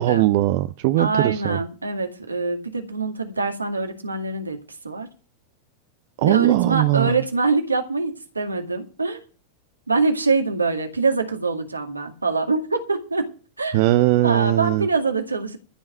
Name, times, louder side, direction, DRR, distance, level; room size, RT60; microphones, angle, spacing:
voice 1, 0.0-1.6 6.2-7.2 13.7-14.9, right 16 dB, 50° right, 0.6 m, -19 dB
voice 2, 0.9-4.6 4.8-5.1 6.2-9.2 9.9-13.3 13.6-13.8 14.2-15.6, right 3 dB, 80° right, 2.0 m, -24 dB
14.5 x 5.6 x 9.2 m
figure-of-eight pair, 90°, 0 cm